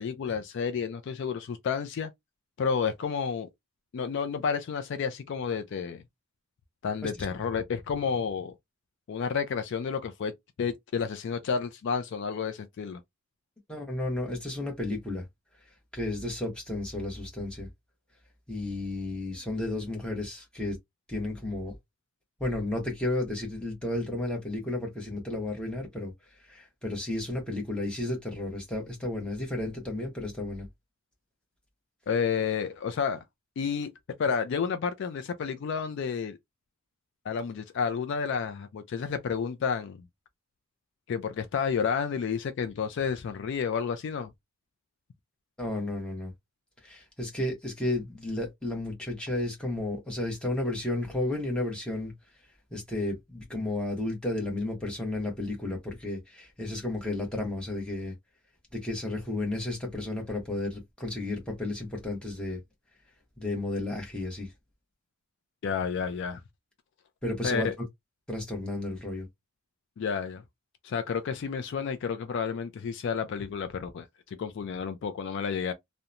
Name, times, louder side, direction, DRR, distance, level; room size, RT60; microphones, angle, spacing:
voice 1, 0.0-2.1 2.6-3.5 3.9-6.0 6.8-8.5 9.1-10.3 10.6-13.0 32.1-33.2 33.6-33.9 34.2-36.4 37.3-40.0 41.1-44.3 65.6-66.4 67.4-67.7 70.0-70.4 70.8-75.7, left 6 dB, 55° left, 0.3 m, -30 dB
voice 2, 13.7-15.3 15.9-17.7 18.5-20.8 21.1-21.8 22.4-26.1 26.4-30.7 45.6-46.3 46.8-52.1 52.7-58.1 58.7-62.6 63.4-64.5 67.2-67.7 68.3-69.3, left 2 dB, 5° left, 0.9 m, -32 dB
2.8 x 2.1 x 2.4 m
head